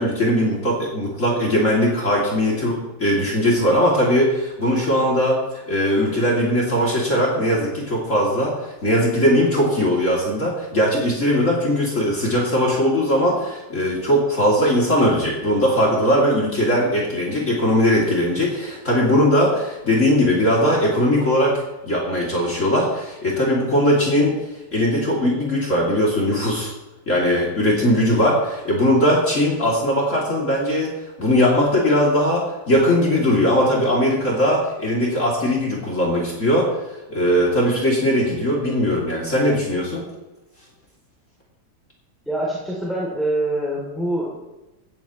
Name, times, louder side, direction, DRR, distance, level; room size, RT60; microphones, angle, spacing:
voice 1, 0.0-21.5 21.8-24.4 24.7-26.7 27.1-30.9 31.2-36.7 37.1-40.0, equal, 40° left, -3 dB, 3.2 m, -19 dB
voice 2, 42.3-44.5, right 1 dB, ahead, -5 dB, 2.8 m, -25 dB
17.0 x 14.0 x 3.1 m, 1.0 s
omnidirectional pair, 2.1 m